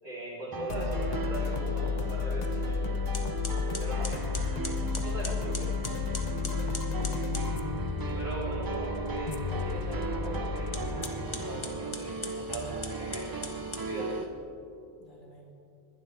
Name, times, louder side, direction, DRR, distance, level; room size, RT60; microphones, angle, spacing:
voice 1, 0.0-2.8 3.8-4.2 5.0-5.7 8.2-13.4 13.8-14.2, right 1 dB, 80° right, -7 dB, 4.0 m, -39 dB
sound 1, 0.5-14.2, right 4 dB, 35° right, 0.3 m, -37 dB
sound 2, 0.7-14.1, left 5 dB, 45° left, 0.7 m, -33 dB
sound 3, 3.1-7.5 10.6-14.3, left 3 dB, 30° left, 1.1 m, -41 dB
voice 2, 4.2-4.8 6.7-7.2 15.0-15.5, equal, 75° left, -4 dB, 3.2 m, -53 dB
20.5 x 11.5 x 3.4 m, 2.6 s
omnidirectional pair, 1.1 m